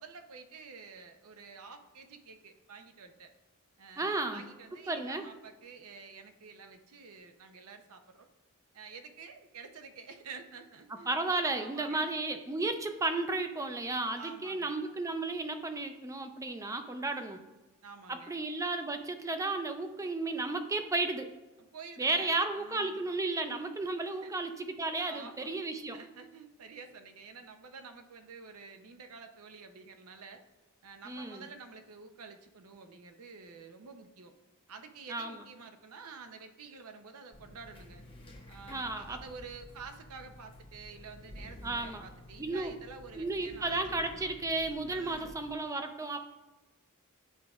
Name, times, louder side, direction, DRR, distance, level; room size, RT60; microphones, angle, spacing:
voice 1, 0.0-3.3 3.8-8.3 8.7-11.1 11.5-12.1 14.2-14.8 17.1-17.5 17.8-18.3 21.6-23.0 24.1-24.3 25.0-25.6 25.9-30.4 30.8-34.3 34.7-38.0 38.5-44.4 44.9-45.4, right 5 dB, 75° right, 7 dB, 0.6 m, -49 dB
voice 2, 4.0-4.4 4.9-5.3 11.1-17.4 18.1-21.3 22.0-26.0 31.0-31.5 35.1-35.4 38.7-39.2 41.6-42.1 42.4-42.7 43.2-46.2, right 2 dB, 15° right, 7 dB, 0.4 m, -33 dB
sound 1, 37.3-45.5, left 1 dB, 25° left, 0.9 m, -51 dB
10.0 x 4.9 x 2.4 m, 1.1 s
head